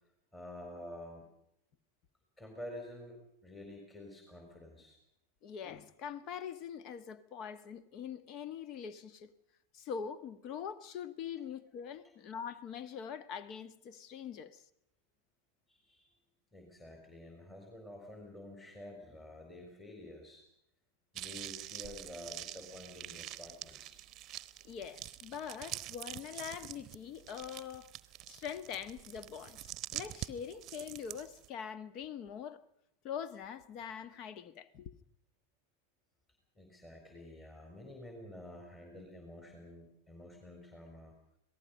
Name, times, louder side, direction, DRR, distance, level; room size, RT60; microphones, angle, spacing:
voice 1, 0.3-1.3 2.4-5.0 15.7-16.1 16.5-20.4 21.1-24.1 36.6-41.1, left 1 dB, 15° left, 4.2 m, -49 dB
voice 2, 5.4-9.3 9.7-14.6 24.6-27.9 28.3-32.6 33.0-34.9, left 7 dB, 40° left, 1.3 m, -43 dB
sound 1, 21.1-31.5, right 13 dB, 30° right, 1.0 m, -46 dB
27.0 x 18.5 x 5.4 m
figure-of-eight pair, 90°, 0 cm